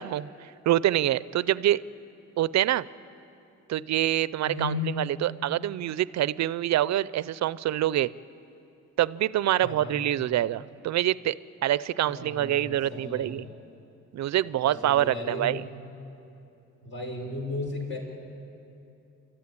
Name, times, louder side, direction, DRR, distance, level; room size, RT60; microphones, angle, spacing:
voice 1, 0.0-1.8 2.4-2.9 3.7-8.1 9.0-11.4 11.6-13.5 14.1-15.6, right 13 dB, 65° right, 18 dB, 0.6 m, -26 dB
voice 2, 4.4-4.9 9.6-10.0 12.0-13.5 14.6-15.6 16.8-18.0, left 3 dB, 40° left, 0 dB, 6.1 m, -35 dB
28.0 x 13.5 x 9.8 m, 2.8 s
cardioid pair, 90°, 30 cm